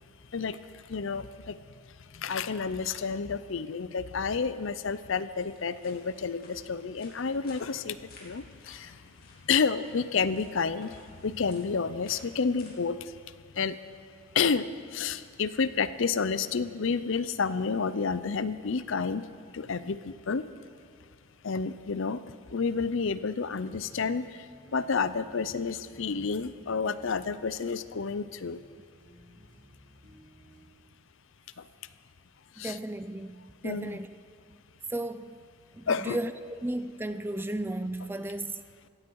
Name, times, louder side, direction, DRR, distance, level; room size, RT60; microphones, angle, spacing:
voice 1, 0.9-1.6 2.1-8.9 9.5-10.9 11.2-13.0 13.6-13.8 14.3-14.7 14.9-19.2 19.5-20.4 21.4-22.2 22.5-24.2 24.7-28.6 32.6-32.8 33.6-34.0 35.9-36.2, left 5 dB, 60° left, 0.6 m, -30 dB
sound 1, 5.3-12.7, left 2 dB, 45° left, 3.0 m, -56 dB
sound 2, 22.5-30.6, equal, 55° right, 3.2 m, -56 dB
voice 2, 32.6-34.1 34.9-35.4 35.7-36.3 36.6-38.6, right 1 dB, 10° right, 0.3 m, -34 dB
16.0 x 15.5 x 4.7 m
head